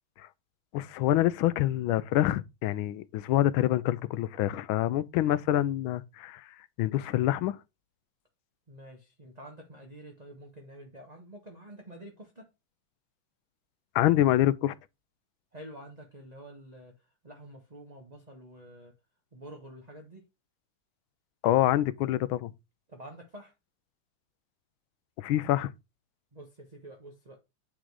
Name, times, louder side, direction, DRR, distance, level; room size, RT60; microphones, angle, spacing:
voice 1, 0.7-6.4 6.8-7.6 13.9-14.7 21.4-22.5 25.2-25.7, left 14 dB, 85° left, 1.4 m, -26 dB
voice 2, 8.7-12.5 15.5-18.9 19.3-20.2 22.9-23.5 26.3-27.4, right 1 dB, 25° right, 1.1 m, -48 dB
8.8 x 3.8 x 4.6 m
omnidirectional pair, 2.2 m